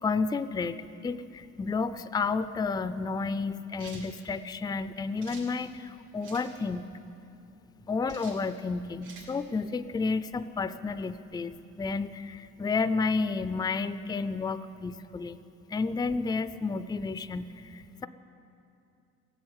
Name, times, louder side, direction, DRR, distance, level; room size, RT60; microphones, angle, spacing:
voice 1, 0.0-6.8 7.9-15.4 15.7-18.1, left 4 dB, 15° left, 13 dB, 0.4 m, -31 dB
sound 1, 3.8-4.1 5.2-5.5 6.2-6.5 8.1-8.4 9.0-9.3, right 4 dB, 80° right, 3.5 m, -47 dB
16.5 x 8.0 x 8.9 m, 2.7 s
cardioid pair, 90°, 30 cm